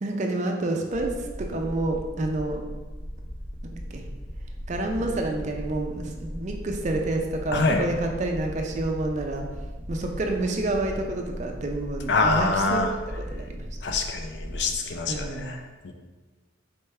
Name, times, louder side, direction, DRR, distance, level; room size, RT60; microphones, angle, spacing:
voice 1, 0.0-2.6 3.6-4.1 4.7-9.5 9.9-13.8 15.1-15.6, right 2 dB, 35° right, 2 dB, 0.4 m, -29 dB
sound 1, 0.9-15.4, equal, 20° left, 0.7 m, -37 dB
voice 2, 7.5-7.9 12.1-12.9 13.8-15.9, left 3 dB, 55° left, 4 dB, 0.4 m, -25 dB
4.3 x 3.3 x 3.3 m, 1.3 s
head